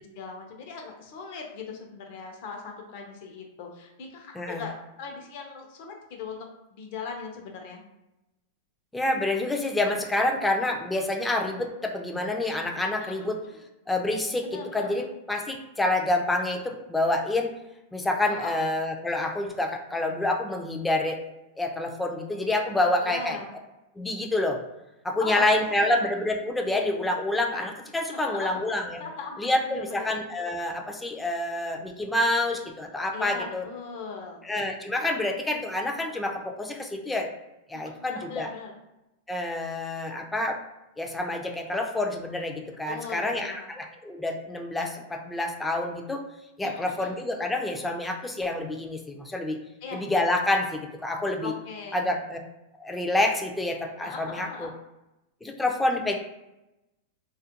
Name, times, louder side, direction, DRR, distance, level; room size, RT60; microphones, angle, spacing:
voice 1, 0.0-7.8 13.0-13.3 14.4-14.9 18.3-18.6 23.0-23.5 25.2-26.1 28.1-28.6 29.0-30.1 33.1-34.4 37.7-38.7 42.9-43.7 46.6-47.1 49.8-50.0 51.4-52.1 54.0-54.7, left 4 dB, 55° left, 2 dB, 0.6 m, -39 dB
voice 2, 8.9-13.4 13.9-17.5 17.9-21.2 21.6-23.4 24.0-24.6 25.0-29.0 29.4-33.6 34.4-37.3 37.7-38.5 39.3-40.6 41.0-46.2 46.6-49.6 49.9-51.5 51.9-52.4 52.8-54.7 55.4-56.2, left 2 dB, 10° left, 3 dB, 0.4 m, -27 dB
2.3 x 2.1 x 2.8 m, 0.94 s
hypercardioid pair, 130°, 0 cm